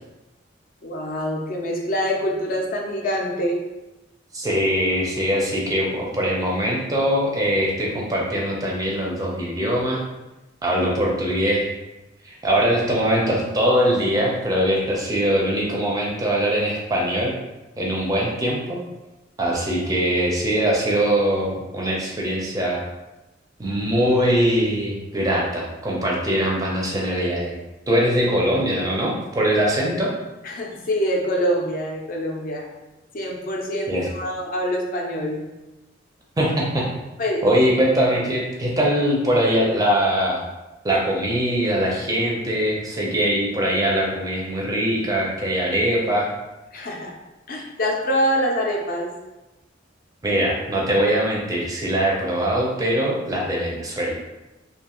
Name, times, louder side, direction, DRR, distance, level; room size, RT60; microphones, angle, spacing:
voice 1, 0.8-3.6 30.4-32.7 33.1-35.4 37.2-37.6 46.7-47.1 47.5-49.1, equal, 45° left, -1 dB, 0.4 m, -25 dB
voice 2, 4.3-10.0 10.6-11.7 12.2-17.3 17.8-18.8 19.4-22.8 23.6-27.6 27.9-30.1 33.9-34.1 36.4-36.9 37.4-40.4 40.8-46.3 50.2-54.1, equal, 20° right, -3 dB, 0.4 m, -22 dB
2.5 x 2.3 x 2.9 m, 1.0 s
head